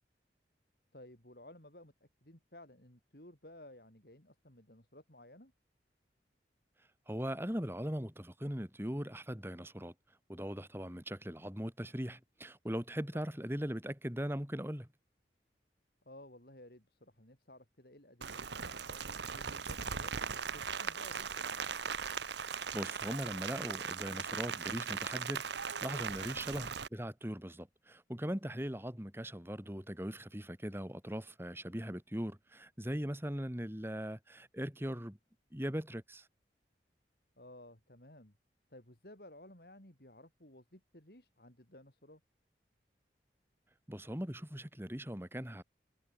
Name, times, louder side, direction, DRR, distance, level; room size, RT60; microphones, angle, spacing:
voice 1, 0.9-5.5 13.1-13.2 16.0-19.0 19.3-20.1 20.5-21.7 26.3-26.6 37.4-38.3 38.7-42.2, left 1 dB, 60° left, 4.8 m, -56 dB
voice 2, 7.1-9.9 10.3-14.9 22.7-25.4 25.8-35.2 35.5-36.3 43.9-45.6, equal, 15° right, 2.9 m, -40 dB
Rain, 18.2-26.9, right 6 dB, 80° right, 1.2 m, -39 dB
head